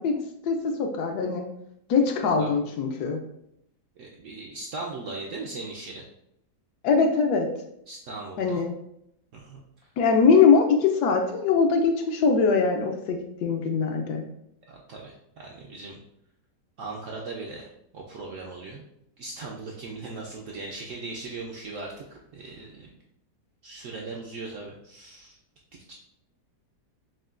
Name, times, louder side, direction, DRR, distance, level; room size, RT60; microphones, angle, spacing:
voice 1, 0.0-1.4 1.9-3.2 6.8-7.5 8.4-8.7 10.0-14.2, left 5 dB, 75° left, 3 dB, 1.1 m, -22 dB
voice 2, 4.0-6.0 7.9-8.6 9.3-9.6 14.7-16.0 16.8-17.7 17.9-18.8 19.2-22.9 23.6-25.4 25.9-26.0, right 3 dB, 75° right, -2 dB, 0.7 m, -38 dB
6.3 x 2.2 x 2.4 m, 0.77 s
omnidirectional pair, 1.8 m